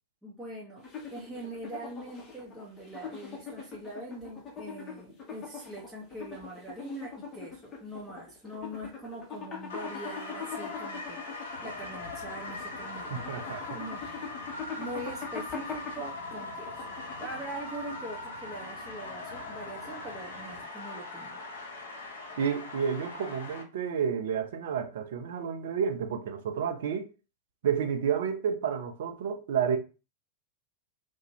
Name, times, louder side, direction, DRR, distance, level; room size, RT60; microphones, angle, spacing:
voice 1, 0.2-0.8 1.1-13.4 13.7-14.0 14.8-16.8 17.2-21.4, right 1 dB, 5° right, 0.8 m, -42 dB
sound 1, 0.8-17.6, left 5 dB, 25° left, 0.9 m, -42 dB
sound 2, 9.7-23.6, left 3 dB, 60° left, 0.7 m, -41 dB
sound 3, 11.5-20.6, equal, 75° right, 1.0 m, -51 dB
voice 2, 13.1-13.8 22.4-27.1 27.6-29.8, right 7 dB, 55° right, 0.5 m, -30 dB
2.5 x 2.2 x 2.9 m
figure-of-eight pair, 90°, 0 cm